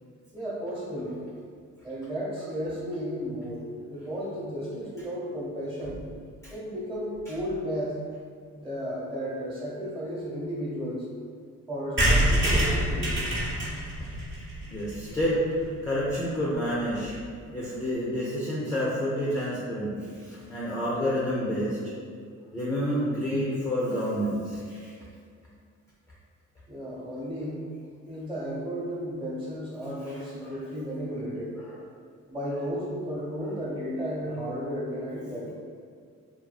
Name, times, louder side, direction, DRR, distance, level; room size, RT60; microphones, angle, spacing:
voice 1, 0.3-1.2 1.8-6.0 6.5-8.0 8.5-11.1 11.7-13.3 26.7-27.6 28.1-31.6 32.3-35.5, equal, 15° right, -8 dB, 1.0 m, -33 dB
sound 1, 12.0-15.7 16.1-16.2 16.4-16.5 16.7-16.8 17.0-17.2, right 1 dB, 40° right, 0.9 m, -26 dB
voice 2, 14.7-17.1 17.5-21.9 22.5-24.9 30.0-30.7 31.5-31.8 32.5-32.8 33.4-33.5, equal, 10° left, -7 dB, 0.4 m, -29 dB
2.6 x 2.3 x 2.3 m, 2.1 s
cardioid pair, 90°, 30 cm